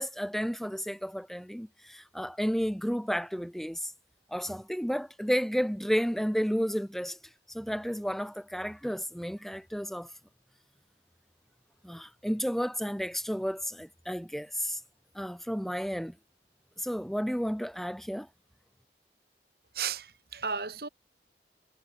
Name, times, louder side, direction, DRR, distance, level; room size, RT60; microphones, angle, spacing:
voice 1, 0.0-3.9 4.3-7.2 7.5-10.1 11.8-14.8 15.1-16.2 16.8-18.3, equal, ahead, 4.5 m, -32 dB
voice 2, 19.7-20.9, right 6 dB, 60° right, 3.2 m, -34 dB
head